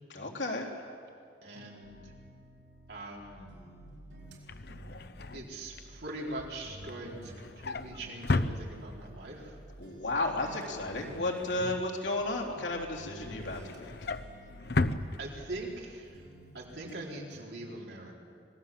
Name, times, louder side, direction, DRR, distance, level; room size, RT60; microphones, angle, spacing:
voice 1, 0.1-0.7 9.8-13.9, left 2 dB, 85° left, 0 dB, 3.5 m, -33 dB
voice 2, 1.4-2.1 2.9-3.5 4.9-5.0 5.3-9.6 15.2-16.3 16.5-18.2, right 2 dB, 70° right, -2 dB, 4.4 m, -42 dB
sound 1, 1.5-3.1 3.5-6.3 6.6-9.5 9.8-10.7 11.0-12.6 12.9-15.8 16.1-17.0 17.3-17.4, right 1 dB, 90° right, 5.1 m, -54 dB
sound 2, 1.8-16.8, right 1 dB, 35° left, 1.5 m, -54 dB
Drawer open or close, 4.2-9.2 9.6-9.9 10.2-12.4 12.8-15.8 16.2-16.4 16.6-16.7, left 2 dB, 60° left, 0.8 m, -36 dB
26.0 x 18.5 x 7.7 m, 2.3 s
head